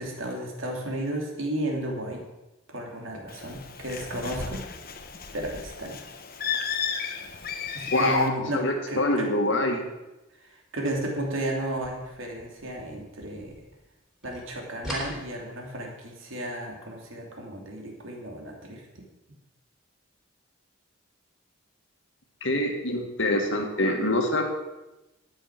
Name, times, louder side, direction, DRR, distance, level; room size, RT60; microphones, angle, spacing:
voice 1, 0.0-2.2 2.7-4.6 5.3-6.0 7.7-9.3 10.4-13.5 14.2-19.0, right 1 dB, 70° right, 0 dB, 2.9 m, -33 dB
Bird, 3.3-8.3, left 6 dB, 45° left, 1.0 m, -34 dB
voice 2, 7.9-9.8 22.4-24.4, left 1 dB, 65° left, 3 dB, 2.0 m, -25 dB
sound 1, 11.8-14.0 14.2-16.0, equal, ahead, 3.2 m, -41 dB
12.5 x 9.2 x 6.0 m, 1.0 s
head